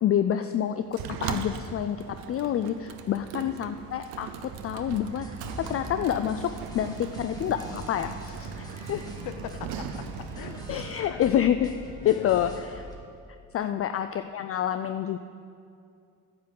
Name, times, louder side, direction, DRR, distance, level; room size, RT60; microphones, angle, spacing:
voice 1, 0.0-4.3 4.6-5.3 5.6-9.0 10.7-11.7 12.0-12.5 13.5-15.2, left 10 dB, 40° left, 9 dB, 0.4 m, -27 dB
Sliding door, 0.9-11.0, right 8 dB, 80° right, 0.8 m, -39 dB
voice 2, 3.0-3.5 9.1-11.2 12.0-12.5 13.6-13.8, left 10 dB, 75° left, 11 dB, 0.7 m, -41 dB
sound 1, 5.1-12.9, left 1 dB, 10° left, 1.9 m, -43 dB
9.3 x 6.1 x 7.7 m, 2.4 s
supercardioid pair, 65°, 36 cm